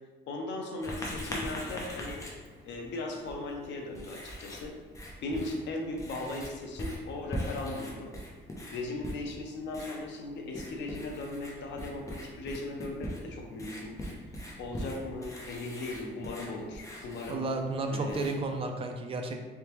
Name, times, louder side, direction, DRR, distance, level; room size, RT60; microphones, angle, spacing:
voice 1, 0.3-2.2 2.6-4.8 5.2-8.1 8.7-14.0 14.6-17.4 17.9-18.2, left 2 dB, 70° left, 1 dB, 0.7 m, -37 dB
Writing, 0.8-18.6, equal, 15° left, 0.6 m, -42 dB
voice 2, 17.3-19.4, right 2 dB, 30° right, 4 dB, 0.4 m, -32 dB
3.7 x 3.5 x 3.0 m, 1.4 s
cardioid pair, 165°, 20 cm